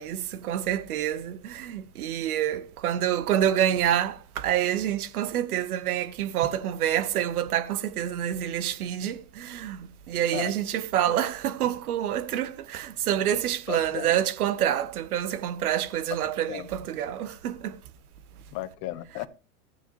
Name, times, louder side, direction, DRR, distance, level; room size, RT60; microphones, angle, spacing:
voice 1, 0.0-9.8 10.1-17.8, right 10 dB, 90° right, 1.0 m, -27 dB
voice 2, 13.7-14.2 16.5-16.7 18.5-19.3, left 16 dB, 50° left, 1.2 m, -35 dB
14.0 x 9.6 x 3.0 m
supercardioid pair, 120°, 43 cm